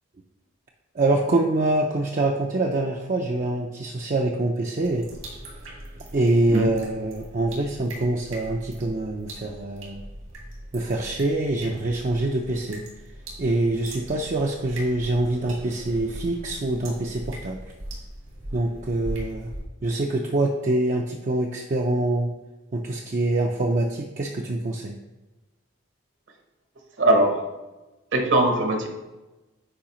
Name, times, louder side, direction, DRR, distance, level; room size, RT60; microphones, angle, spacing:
voice 1, 1.0-5.1 6.1-10.0 10.7-12.8 13.4-17.6 18.5-19.5 19.8-22.3 22.7-24.9, right 2 dB, 40° right, 0 dB, 0.4 m, -25 dB
sound 1, 4.8-19.6, right 1 dB, 85° right, 2.1 m, -40 dB
voice 2, 27.0-27.4 28.1-28.9, right 1 dB, 65° right, 3 dB, 1.0 m, -20 dB
8.6 x 4.8 x 3.0 m, 1.1 s
head